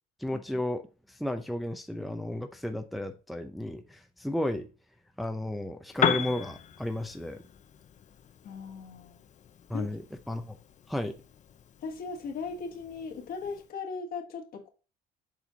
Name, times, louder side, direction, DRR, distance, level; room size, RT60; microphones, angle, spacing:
voice 1, 0.2-0.8 1.2-4.7 5.2-7.4 9.7-10.0 10.3-10.5 10.9-11.1, left 1 dB, ahead, 0.6 m, -33 dB
Piano, 5.9-13.7, left 9 dB, 45° left, 0.7 m, -37 dB
voice 2, 8.4-9.2 9.7-9.9 11.8-14.7, left 5 dB, 60° left, 1.6 m, -38 dB
7.3 x 4.3 x 3.9 m
cardioid pair, 110°, 17 cm